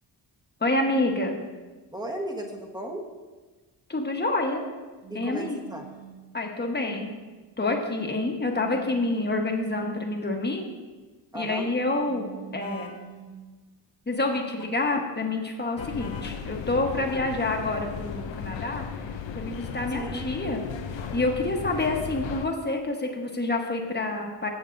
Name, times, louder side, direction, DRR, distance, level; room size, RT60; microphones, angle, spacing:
voice 1, 0.6-1.4 3.9-4.6 5.1-5.6 6.3-7.1 7.6-10.6 11.3-13.0 14.1-18.8 19.3-20.6 20.9-24.5, left 2 dB, 25° left, 2 dB, 1.2 m, -28 dB
voice 2, 1.9-3.0 5.1-5.8 11.3-11.7 17.1-17.2 19.9-20.2, right 1 dB, 10° right, 1 dB, 1.2 m, -35 dB
sound 1, 5.0-6.3 8.5-9.9 12.0-13.6 16.0-16.7, right 8 dB, 80° right, 2.0 m, -46 dB
sound 2, 12.6-13.0 14.3-14.7 15.8-16.3, left 5 dB, 50° left, 1.4 m, -43 dB
sound 3, 15.8-22.5, left 7 dB, 80° left, 0.7 m, -36 dB
14.5 x 7.0 x 2.6 m, 1.3 s
wide cardioid pair, 115°, 44 cm